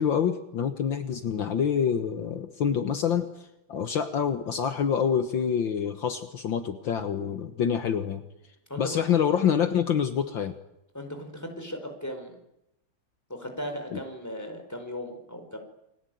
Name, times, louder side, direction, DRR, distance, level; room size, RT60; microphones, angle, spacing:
voice 1, 0.0-8.2 8.8-10.5 13.9-14.0, left 8 dB, 65° left, 8 dB, 2.0 m, -26 dB
voice 2, 10.9-12.4 13.3-15.6, equal, 5° left, 5 dB, 4.7 m, -37 dB
29.5 x 21.5 x 9.3 m, 0.87 s
omnidirectional pair, 2.3 m